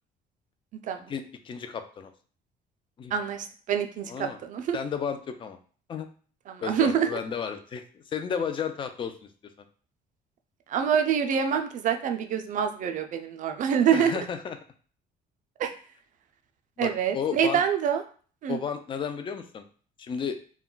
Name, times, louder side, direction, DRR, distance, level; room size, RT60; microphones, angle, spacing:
voice 1, 1.1-2.1 3.0-3.1 4.1-4.4 4.7-5.6 5.9-6.1 6.6-9.3 13.9-14.6 16.8-17.6 18.5-19.6 20.0-20.4, left 7 dB, 30° left, 7 dB, 0.4 m, -33 dB
voice 2, 3.1-4.8 6.5-7.1 10.7-14.1 15.6-15.7 16.8-18.0 18.4-18.6, right 8 dB, 50° right, 6 dB, 0.4 m, -26 dB
2.2 x 2.1 x 3.8 m, 0.42 s
cardioid pair, 110°, 17 cm